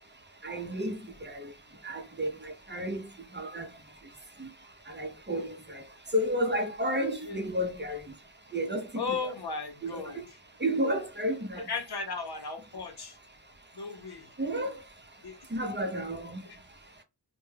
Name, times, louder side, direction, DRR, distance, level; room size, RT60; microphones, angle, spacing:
voice 1, 0.4-1.0 1.3-1.5 1.8-3.0 3.3-3.6 4.4-4.5 4.9-5.5 6.1-8.0 8.5-9.3 9.8-10.0 10.6-11.6 14.4-14.7 15.5-16.4, equal, 30° right, 0.6 m, -31 dB
voice 2, 9.0-10.2 11.6-13.2 13.7-14.3 15.2-15.4, left 4 dB, 75° left, 0.7 m, -36 dB
2.2 x 2.1 x 3.2 m
wide cardioid pair, 40°, 39 cm